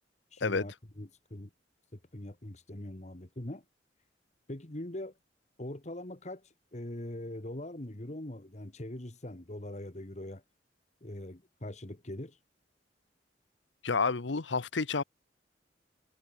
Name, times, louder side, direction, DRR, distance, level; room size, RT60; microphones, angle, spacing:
voice 1, 0.3-1.5 1.9-3.6 4.5-5.1 5.6-10.4 11.0-12.4, left 1 dB, 40° left, 1.6 m, -42 dB
voice 2, 13.8-15.0, left 4 dB, 85° left, 1.0 m, -29 dB
head